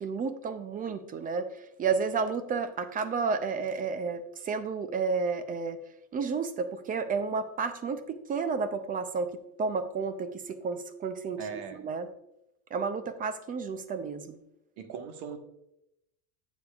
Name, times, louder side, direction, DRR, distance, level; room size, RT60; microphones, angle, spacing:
voice 1, 0.0-1.5 1.8-5.8 6.1-12.1 12.7-14.4, right 5 dB, 20° right, 11 dB, 0.3 m, -31 dB
voice 2, 11.4-11.8 14.8-15.4, right 6 dB, 70° right, 7 dB, 1.4 m, -39 dB
11.5 x 8.1 x 2.4 m, 0.85 s
cardioid pair, 145°, 44 cm